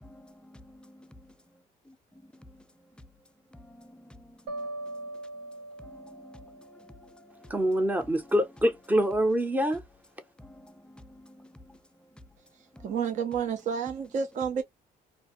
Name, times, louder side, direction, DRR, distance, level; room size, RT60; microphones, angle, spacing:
voice 1, 0.0-1.1 1.9-2.0 3.7-4.3 4.6-4.7 5.8-6.7 7.4-7.5 10.4-11.8, left 1 dB, 5° left, 0.4 m, -51 dB
sound 1, 4.5-7.6, right 2 dB, 85° right, 0.9 m, -41 dB
voice 2, 7.5-9.8, equal, 10° right, 0.7 m, -25 dB
voice 3, 12.8-14.6, right 7 dB, 45° right, 0.6 m, -30 dB
2.6 x 2.2 x 2.6 m
cardioid pair, 110°, 17 cm